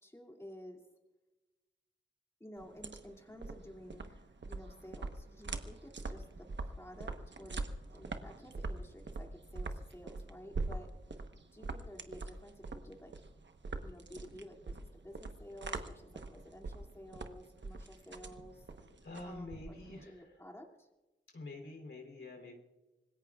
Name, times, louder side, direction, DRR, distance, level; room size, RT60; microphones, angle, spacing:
voice 1, 0.0-0.8 2.4-10.9 11.5-13.1 13.8-18.7 19.2-20.9, equal, 15° left, 1 dB, 2.5 m, -52 dB
sound 1, 2.6-20.0, right 3 dB, 65° right, 1.1 m, -43 dB
voice 2, 18.9-20.4 21.3-22.6, left 2 dB, 90° left, 2 dB, 3.2 m, -48 dB
26.0 x 20.0 x 2.4 m, 1.1 s
wide cardioid pair, 70°, 20 cm